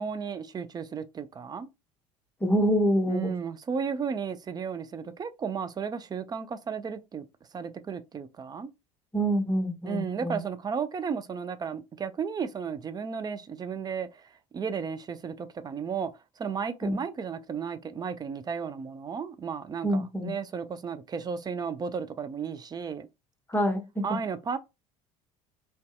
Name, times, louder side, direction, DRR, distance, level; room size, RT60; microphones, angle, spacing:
voice 1, 0.0-1.7 3.1-7.2 7.5-8.7 9.8-14.2 14.5-16.1 16.4-23.1 24.0-24.6, right 6 dB, 25° right, 0.4 m, -34 dB
voice 2, 2.4-3.3 9.1-10.4 16.8-17.0 19.8-20.3 23.5-24.0, equal, 10° left, 0.8 m, -26 dB
2.6 x 2.2 x 2.3 m
hypercardioid pair, 70°, 18 cm